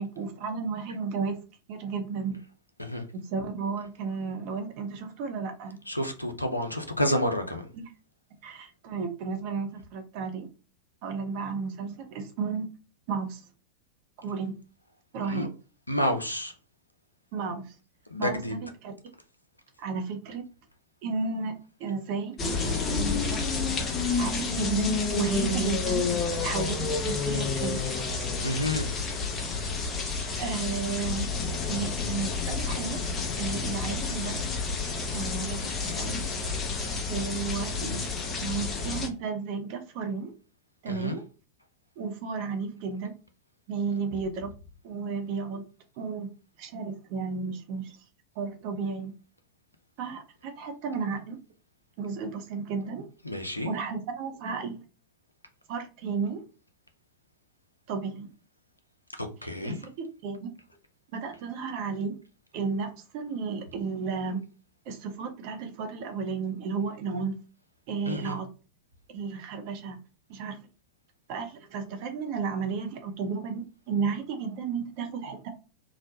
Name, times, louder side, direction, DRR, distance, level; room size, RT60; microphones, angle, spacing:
voice 1, 0.0-1.4 1.7-2.4 3.1-5.8 7.7-7.9 8.4-10.5 11.0-12.7 13.1-13.4 14.2-14.6 15.1-15.5 17.3-17.7 18.2-18.9 19.8-20.4 21.0-21.5 21.8-22.4 22.6-23.5 24.2-26.1 26.4-27.9 30.4-31.3 31.7-33.0 33.4-34.4 35.1-36.3 37.1-40.3 40.8-41.2 42.0-43.1 43.7-44.5 44.8-45.6 46.0-46.3 46.6-48.0 48.4-49.1 50.0-51.4 52.0-53.0 53.6-54.8 55.7-56.4 57.9-58.3 59.6-60.5 61.1-62.2 62.5-64.4 64.9-67.3 67.9-68.5 69.1-70.0 70.3-70.6 71.3-75.5, right 5 dB, 45° right, 0.6 m, -33 dB
voice 2, 5.9-7.7 15.3-15.5 15.9-16.5 18.1-18.5 28.4-28.9 40.9-41.2 53.3-53.7 59.2-59.8 68.1-68.4, left 1 dB, 85° left, 0.5 m, -29 dB
sound 1, 22.4-39.1, left 4 dB, 25° left, 0.7 m, -30 dB
3.0 x 2.1 x 2.7 m
figure-of-eight pair, 90°, 0 cm